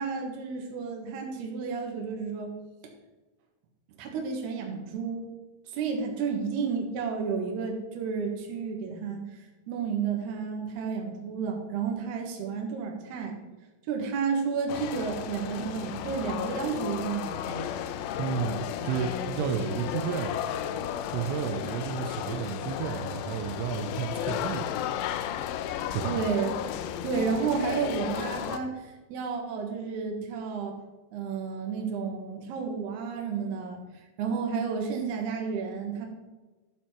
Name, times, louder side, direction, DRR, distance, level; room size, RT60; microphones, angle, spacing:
voice 1, 0.0-2.5 4.0-5.3 5.7-9.2 9.7-13.3 13.9-17.7 26.0-26.6 27.0-30.7 31.1-33.8 34.2-36.1, right 5 dB, 65° right, 1 dB, 3.3 m, -31 dB
sound 1, 14.7-28.6, left 10 dB, 85° left, 3.0 m, -34 dB
voice 2, 18.2-20.4 21.1-24.7 25.9-26.2, right 8 dB, 85° right, 7 dB, 3.3 m, -32 dB
12.0 x 7.4 x 4.4 m, 1.2 s
omnidirectional pair, 5.6 m